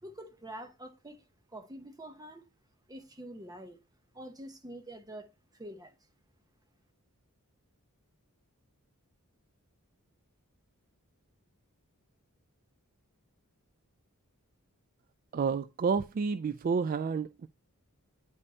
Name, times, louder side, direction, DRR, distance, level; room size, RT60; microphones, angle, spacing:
voice 1, 0.0-2.5 2.9-3.8 4.1-5.9, right 1 dB, 15° right, 0.9 m, -46 dB
voice 2, 15.3-17.5, right 5 dB, 40° right, 0.3 m, -30 dB
9.5 x 5.4 x 2.8 m
head